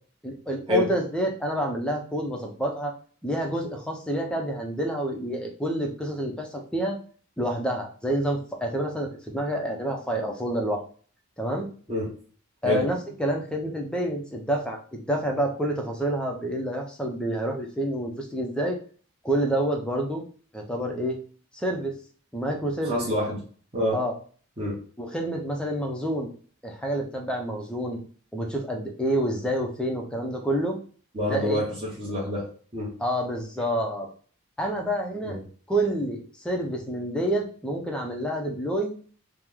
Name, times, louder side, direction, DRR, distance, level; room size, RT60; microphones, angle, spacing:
voice 1, 0.2-2.9 3.2-7.0 7.4-10.8 11.4-11.7 12.6-18.8 19.2-20.2 20.5-21.2 21.5-21.9 22.3-23.0 23.9-24.1 25.0-26.3 26.6-28.0 28.3-30.8 31.2-31.6 33.0-34.1 34.6-35.4 35.7-39.0, right 1 dB, 5° left, 1 dB, 0.4 m, -28 dB
voice 2, 22.8-23.4 23.7-24.0 24.6-24.8 31.1-32.9 35.2-35.4, left 1 dB, 25° right, -5 dB, 0.8 m, -27 dB
3.0 x 2.0 x 3.5 m, 0.43 s
head